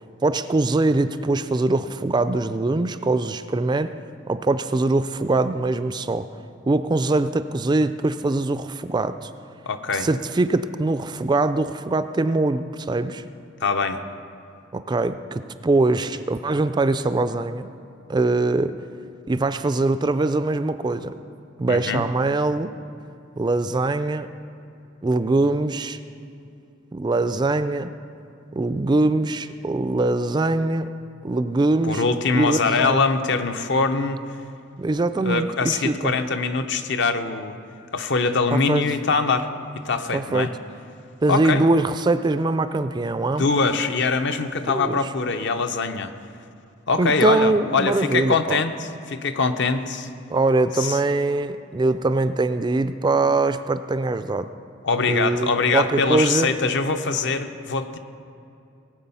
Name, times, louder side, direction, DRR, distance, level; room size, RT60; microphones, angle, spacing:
voice 1, 0.2-3.9 4.3-6.3 6.7-9.3 9.9-13.2 14.7-17.7 18.1-18.7 19.3-21.2 21.6-22.7 23.4-24.3 25.0-26.0 26.9-27.9 28.5-30.9 31.2-32.0 32.3-33.0 34.8-36.1 38.5-38.8 40.1-40.5 41.2-43.4 44.6-45.1 47.0-48.6 50.3-54.5 55.1-56.5, right 2 dB, 20° right, 11 dB, 0.3 m, -22 dB
voice 2, 9.7-10.1 13.6-14.0 21.7-22.1 31.9-34.2 35.2-37.6 37.9-39.5 39.8-40.5 41.3-41.6 43.4-46.1 46.9-50.1 50.8-51.0 54.8-58.0, left 4 dB, 60° left, 8 dB, 0.8 m, -23 dB
19.5 x 7.8 x 5.5 m, 2.6 s
head